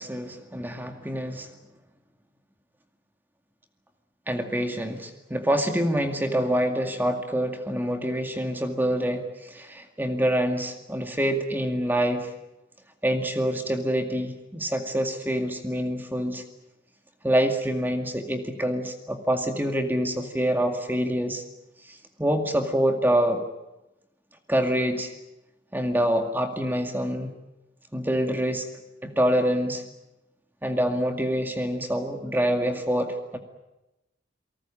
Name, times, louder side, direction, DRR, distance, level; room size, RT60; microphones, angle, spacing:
voice 1, 0.0-1.5 4.3-12.3 13.0-16.4 17.2-21.4 21.9-23.4 24.5-25.1 25.7-27.3 27.9-28.7 29.0-29.8 30.6-33.4, equal, 10° right, 5 dB, 2.2 m, -26 dB
29.5 x 19.0 x 8.8 m, 0.95 s
head